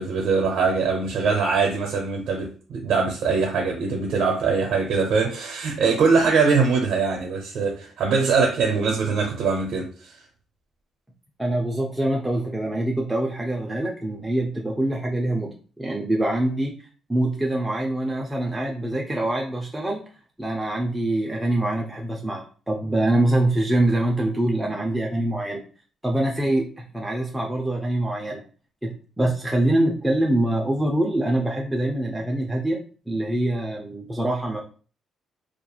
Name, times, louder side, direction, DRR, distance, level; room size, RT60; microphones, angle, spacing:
voice 1, 0.0-10.2, right 4 dB, 70° right, 0.6 m, -22 dB
voice 2, 11.4-16.8 17.1-20.0 20.4-25.6 26.0-28.4 28.8-32.8 33.1-34.6, right 1 dB, 10° right, 0.4 m, -24 dB
2.8 x 2.4 x 2.3 m
cardioid pair, 90°, 0 cm